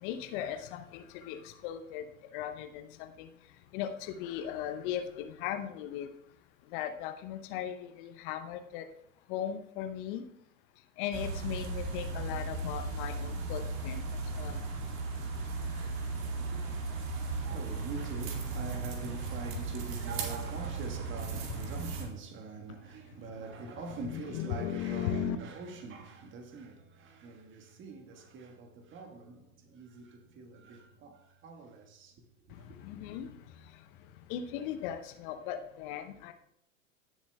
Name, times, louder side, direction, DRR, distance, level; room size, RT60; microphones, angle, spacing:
voice 1, 0.0-2.0 2.3-3.3 3.7-6.1 6.7-8.9 9.3-10.2 11.0-14.0 14.4-14.6 24.0-25.4 32.8-33.3 34.3-36.3, left 10 dB, 40° left, 0.7 m, -37 dB
sound 1, 11.1-22.1, right 3 dB, 45° right, 2.1 m, -36 dB
voice 2, 16.3-32.2 32.5-32.8, right 3 dB, 30° right, 1.5 m, -44 dB
16.5 x 7.1 x 2.3 m
figure-of-eight pair, 95°, 40 cm